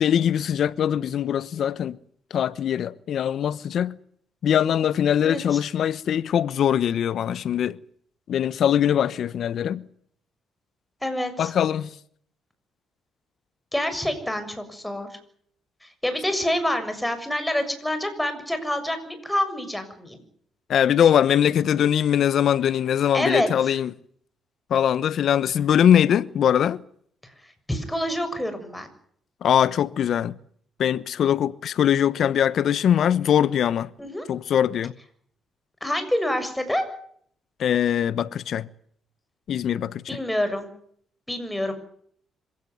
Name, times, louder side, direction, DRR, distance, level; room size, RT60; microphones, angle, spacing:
voice 1, 0.0-2.0 2.3-4.0 4.4-7.7 8.3-9.8 11.4-11.9 20.7-23.9 24.7-26.8 29.4-30.3 30.8-33.9 34.3-34.9 37.6-38.7 39.5-40.0, left 9 dB, 65° left, 1.1 m, -22 dB
voice 2, 11.0-11.5 13.7-15.1 15.8-20.2 23.1-23.7 27.7-28.9 34.0-34.2 35.8-36.9 40.1-40.7 41.3-41.7, left 1 dB, 5° left, 6.8 m, -27 dB
26.0 x 16.5 x 9.5 m
cardioid pair, 90°, 0 cm